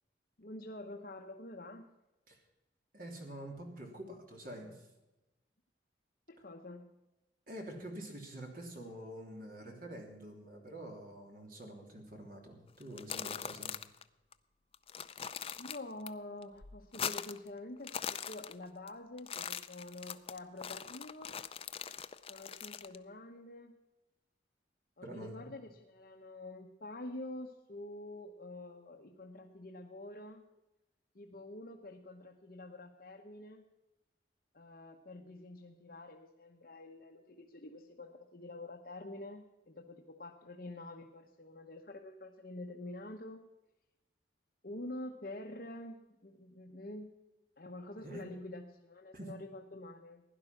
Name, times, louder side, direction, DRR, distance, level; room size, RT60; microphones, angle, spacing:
voice 1, 0.4-1.9 6.3-6.9 15.6-21.4 22.3-23.8 25.0-30.4 31.1-33.6 34.5-43.4 44.6-47.1 47.6-50.2, left 1 dB, 50° left, 1 dB, 1.0 m, -47 dB
voice 2, 2.9-4.9 7.5-13.7 25.0-25.5 48.0-48.2 49.1-49.3, right 1 dB, 50° right, 1 dB, 3.2 m, -47 dB
sound 1, 12.8-14.0 14.3-14.4 14.7-16.1 16.4-17.5 17.8-18.9 19.2-23.0, left 8 dB, 30° left, 0.5 m, -41 dB
16.0 x 11.0 x 5.9 m, 1.0 s
head